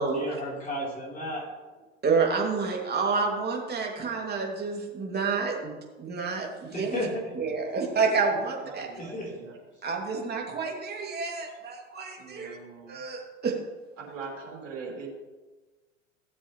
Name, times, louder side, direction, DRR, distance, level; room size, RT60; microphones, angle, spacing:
voice 1, 0.1-1.5 6.7-7.3 9.0-9.3, left 1 dB, 20° left, -3 dB, 4.0 m, -33 dB
voice 2, 2.0-7.1 7.4-8.9 9.8-12.6 12.9-13.5, right 4 dB, 25° right, 0 dB, 2.7 m, -29 dB
voice 3, 8.4-9.6 12.2-13.0 14.0-15.1, right 4 dB, 75° right, -2 dB, 3.3 m, -42 dB
16.5 x 7.6 x 3.3 m, 1.2 s
figure-of-eight pair, 80°, 37 cm